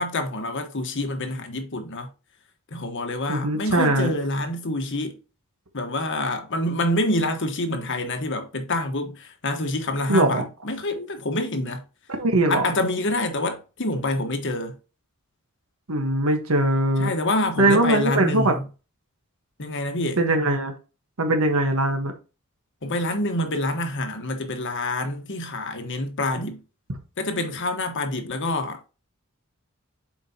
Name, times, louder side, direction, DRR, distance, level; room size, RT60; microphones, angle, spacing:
voice 1, 0.0-2.1 2.7-5.2 5.7-11.8 12.5-14.8 17.0-18.6 19.6-20.2 22.8-26.6 27.2-28.9, left 1 dB, 60° left, 1.2 m, -27 dB
voice 2, 3.3-4.1 10.1-10.4 12.1-12.6 15.9-17.1 17.6-18.5 20.2-20.7 21.2-22.1, right 2 dB, 75° right, 1.2 m, -21 dB
7.3 x 4.8 x 2.8 m
head